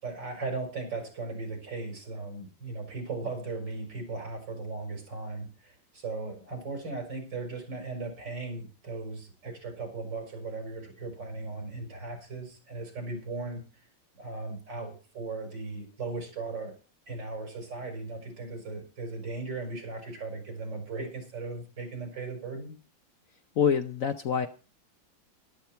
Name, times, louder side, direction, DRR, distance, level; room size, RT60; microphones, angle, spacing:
voice 1, 0.0-13.6 14.2-16.7 17.1-22.7, right 3 dB, 75° right, 3 dB, 5.7 m, -37 dB
voice 2, 23.6-24.5, left 7 dB, 60° left, 8 dB, 0.9 m, -26 dB
13.0 x 12.0 x 4.5 m, 0.36 s
omnidirectional pair, 2.0 m